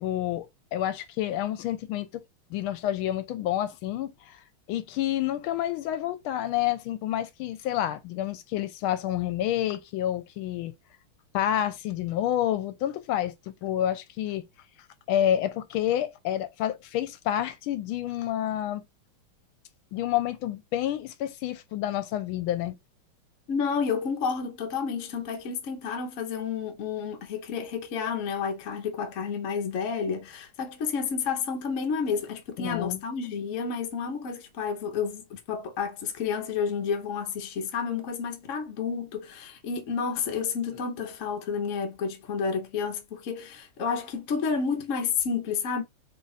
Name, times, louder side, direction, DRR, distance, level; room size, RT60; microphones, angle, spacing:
voice 1, 0.0-2.2 2.5-4.4 4.7-10.7 11.3-13.3 13.6-14.5 15.1-18.8 19.9-22.8 32.6-33.0, left 12 dB, 80° left, 1.4 m, -29 dB
voice 2, 23.5-45.8, left 6 dB, 55° left, 0.9 m, -30 dB
3.4 x 2.4 x 4.0 m
omnidirectional pair, 2.3 m